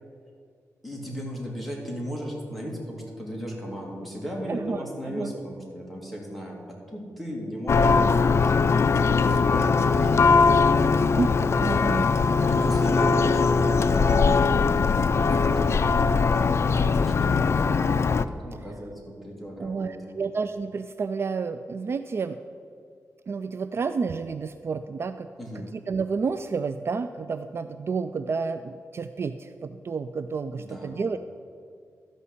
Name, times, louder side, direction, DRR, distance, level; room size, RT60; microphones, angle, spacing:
voice 1, 0.8-11.1 12.4-17.9 18.1-20.2 25.4-25.7 30.6-31.0, equal, ahead, -3 dB, 2.7 m, -37 dB
Church bell, 7.7-18.2, left 4 dB, 50° left, 0.4 m, -21 dB
voice 2, 11.2-12.1 19.6-22.4 23.3-25.3 25.6-31.2, right 5 dB, 45° right, 10 dB, 0.4 m, -30 dB
12.5 x 5.4 x 8.3 m, 2.3 s
wide cardioid pair, 105°, 6 cm